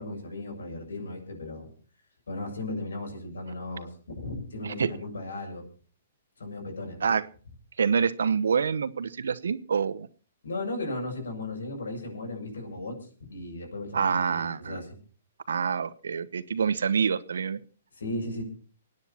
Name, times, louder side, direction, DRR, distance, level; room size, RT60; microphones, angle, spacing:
voice 1, 0.0-1.7 2.3-5.7 6.4-7.1 10.4-14.9 18.0-18.4, left 2 dB, 85° left, 1 dB, 7.2 m, -36 dB
voice 2, 7.8-10.1 13.9-14.8 15.5-17.6, right 6 dB, 80° right, 15 dB, 1.0 m, -26 dB
25.0 x 9.7 x 4.4 m, 0.40 s
hypercardioid pair, 140°, 0 cm